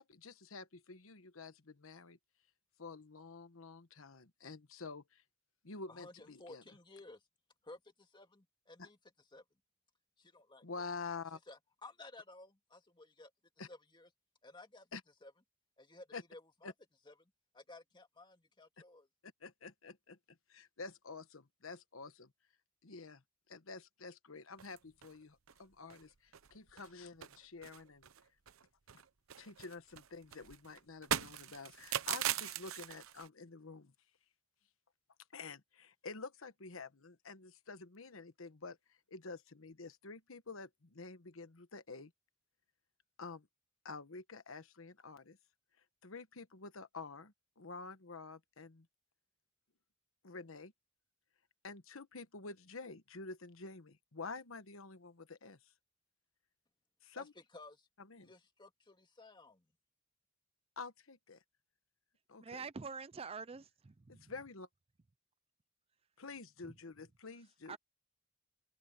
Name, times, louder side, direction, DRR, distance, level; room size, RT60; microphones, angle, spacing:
voice 1, 0.0-2.2 2.8-5.2 5.6-6.6 8.8-8.9 10.6-11.4 13.6-13.7 14.9-15.0 16.1-16.2 16.6-16.7 19.4-22.3 22.8-23.2 23.5-28.1 29.4-33.9 35.3-42.1 43.2-43.5 43.8-45.4 46.0-48.9 50.2-50.7 51.6-55.7 57.0-57.3 58.0-58.3 60.8-61.4 62.3-62.6 64.1-64.7 66.2-67.8, left 4 dB, 80° left, 1.2 m, -49 dB
voice 2, 5.9-7.2 7.6-9.0 9.3-9.4 10.2-10.9 11.3-13.3 13.7-14.1 14.4-14.9 15.2-15.3 15.8-16.7 17.1-19.1 57.2-57.3 57.5-57.9 58.2-59.7, left 2 dB, 25° left, 2.4 m, -56 dB
sound 1, 24.6-25.1 25.5-25.6 25.9-26.0 26.3-26.9 27.2-28.6 28.9-33.3, right 10 dB, 85° right, 0.8 m, -40 dB
voice 3, 62.4-64.3 66.6-66.7 67.7-67.8, right 5 dB, 30° right, 0.5 m, -46 dB
head